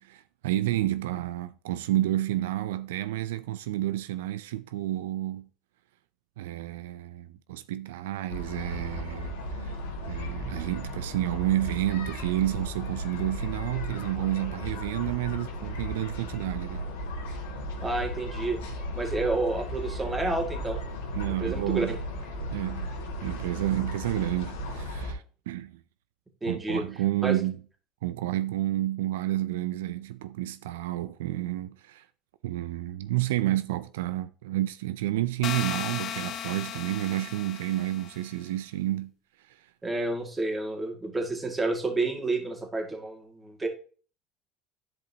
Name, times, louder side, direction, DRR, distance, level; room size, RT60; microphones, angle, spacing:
voice 1, 0.0-5.5 6.4-9.7 10.1-16.8 21.1-21.9 22.5-22.9 23.2-25.7 26.5-27.6 28.0-32.0 32.4-39.1, right 14 dB, 90° right, 0.4 m, -30 dB
sound 1, 8.3-25.1, equal, 85° left, 2.1 m, -35 dB
voice 2, 17.8-18.6 19.0-20.8 21.2-22.0 26.4-26.8 27.2-27.4 39.8-43.7, right 2 dB, 15° right, 2.1 m, -30 dB
sound 2, 35.4-38.3, left 10 dB, 50° left, 0.6 m, -36 dB
10.5 x 5.1 x 2.8 m
supercardioid pair, 95°, 0 cm